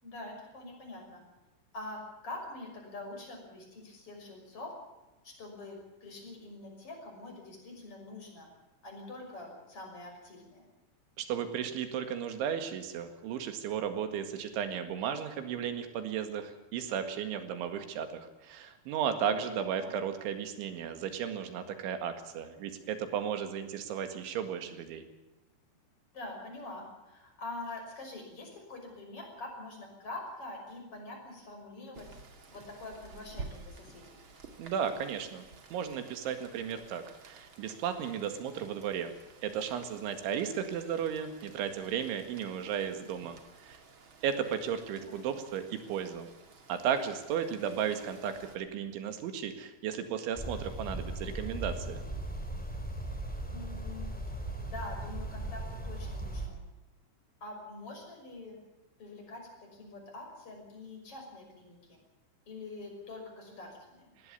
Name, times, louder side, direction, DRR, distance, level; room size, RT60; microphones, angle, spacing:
voice 1, 0.0-1.2 1.7-4.7 5.2-8.5 8.8-10.6 19.2-19.3 19.8-19.9 26.1-32.2 32.5-34.2 45.1-45.2 53.5-54.1 54.6-56.6 57.4-58.6 59.0-62.0 62.5-64.1, left 2 dB, 30° left, 2 dB, 6.6 m, -45 dB
voice 2, 11.2-25.1 34.6-35.5 35.7-39.1 39.4-43.4 43.6-43.8 44.2-46.3 46.7-52.0 64.2-64.3, right 8 dB, 80° right, 8 dB, 4.3 m, -34 dB
Rain, 31.9-48.6, right 4 dB, 45° right, 1.8 m, -52 dB
sound 1, 50.4-56.5, right 1 dB, ahead, 2.4 m, -38 dB
20.0 x 16.5 x 8.5 m, 1.0 s
omnidirectional pair, 5.3 m